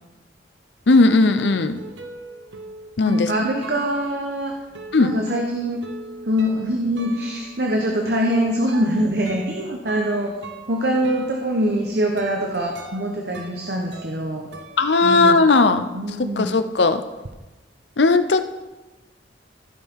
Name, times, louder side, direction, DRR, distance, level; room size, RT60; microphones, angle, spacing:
sound 1, 0.8-15.6 15.9-17.3, right 3 dB, 80° right, 1.0 m, -42 dB
voice 1, 0.9-1.8 3.0-3.3 4.9-5.1 14.8-15.9 16.2-17.0 18.0-18.4, left 3 dB, 70° left, 10 dB, 0.7 m, -17 dB
voice 2, 3.0-4.5 5.0-5.8 6.2-10.3 10.7-14.5 15.0-15.4 15.9-16.6, equal, 60° right, 1 dB, 1.1 m, -23 dB
15.0 x 5.6 x 4.7 m, 1.1 s
head